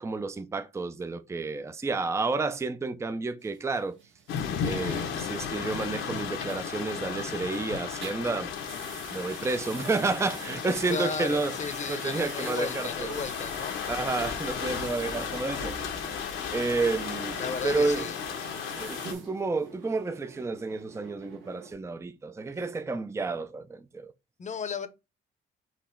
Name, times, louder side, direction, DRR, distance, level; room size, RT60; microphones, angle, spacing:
voice 1, 0.0-4.0 4.6-8.5 9.1-11.5 11.9-13.2 13.9-15.8 16.5-18.1 18.8-24.1, right 3 dB, 15° right, 0.5 m, -30 dB
sound 1, 3.4-7.6 7.9-21.7, right 5 dB, 75° right, 1.3 m, -47 dB
sound 2, 4.3-19.1, left 7 dB, 85° left, 1.0 m, -35 dB
voice 2, 10.9-13.8 17.4-18.1 24.4-24.9, left 5 dB, 35° left, 0.8 m, -34 dB
4.2 x 3.0 x 4.3 m
cardioid pair, 90°, 20 cm